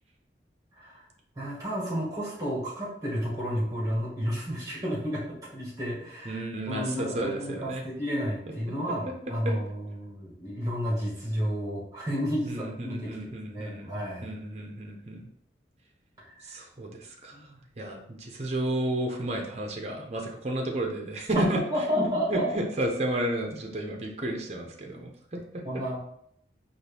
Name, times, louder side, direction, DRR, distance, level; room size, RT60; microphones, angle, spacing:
voice 1, 1.3-14.3 16.4-16.6 17.3-17.6 21.3-21.4 21.7-22.5 25.6-26.0, equal, 20° right, -6 dB, 1.5 m, -31 dB
voice 2, 6.2-7.8 9.4-9.5 12.5-15.3 16.4-17.3 17.8-21.6 22.3-25.4, right 1 dB, 35° right, 2 dB, 0.6 m, -32 dB
4.3 x 2.6 x 3.4 m, 0.69 s
head